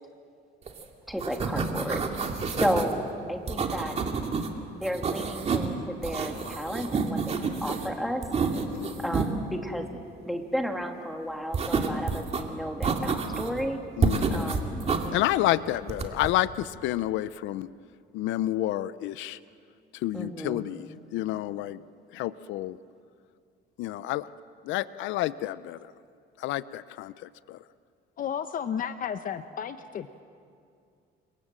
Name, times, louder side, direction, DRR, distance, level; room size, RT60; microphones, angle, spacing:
sound 1, 0.7-0.8 1.1-2.9 3.5-4.5 4.8-5.7 6.0-7.9 8.2-9.3 11.5-12.4 12.8-13.6 14.0-15.1 15.9-16.3, right 5 dB, 35° right, 2.4 m, -29 dB
voice 1, 1.1-2.1 2.6-3.0 3.3-4.0 4.7-8.2 9.0-9.9 10.2-13.8 14.3-14.9 20.1-20.6, equal, ahead, 3 dB, 2.4 m, -32 dB
voice 2, 14.0-14.5 15.1-17.7 18.1-19.4 20.0-20.9 21.1-21.8 22.1-22.8 23.8-24.3 24.7-25.8 26.4-27.1 27.5-27.6, left 15 dB, 85° left, 16 dB, 0.6 m, -29 dB
voice 3, 28.2-30.2, left 8 dB, 45° left, 10 dB, 0.8 m, -33 dB
30.0 x 25.5 x 7.5 m, 2.4 s
cardioid pair, 145°, 19 cm